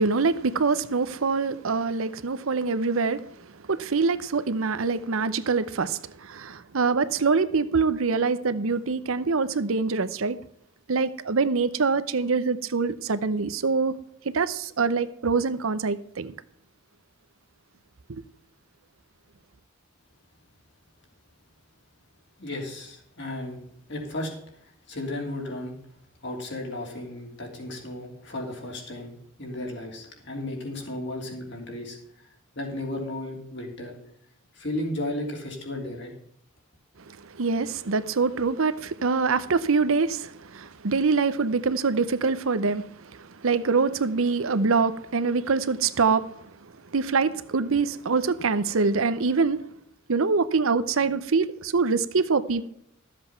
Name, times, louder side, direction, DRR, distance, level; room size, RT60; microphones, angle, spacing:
voice 1, 0.0-3.2 3.7-6.0 6.3-10.4 10.9-13.9 14.3-16.3 37.4-40.3 40.5-42.8 43.4-46.2 46.9-49.6 50.1-52.7, right 4 dB, 75° right, 0.7 m, -24 dB
voice 2, 22.4-23.6 23.9-24.3 24.9-25.8 26.2-32.0 32.5-33.9 34.5-36.1, left 1 dB, 55° left, 3.1 m, -34 dB
13.0 x 7.6 x 5.8 m
head